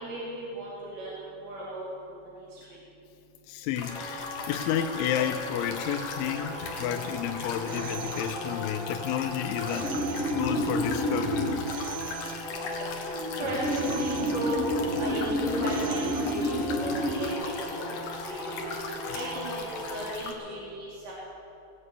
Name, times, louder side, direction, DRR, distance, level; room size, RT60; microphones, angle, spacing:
voice 1, 0.0-1.1 1.4-2.2 13.0-14.6 15.0-18.0 18.6-18.7 19.1-21.1, right 1 dB, 40° right, -8 dB, 3.6 m, -35 dB
voice 2, 3.5-10.1 10.3-11.6, left 9 dB, 85° left, 5 dB, 3.0 m, -31 dB
sound 1, 3.8-20.3, left 5 dB, 65° left, 2.2 m, -40 dB
sound 2, 3.8-20.1, equal, ahead, 1.1 m, -32 dB
Telephone, 7.7-8.9 9.7-10.9 11.7-12.9 13.7-14.9 15.7-16.9, right 11 dB, 80° right, 2.7 m, -44 dB
20.0 x 7.5 x 8.2 m, 2.7 s
omnidirectional pair, 5.5 m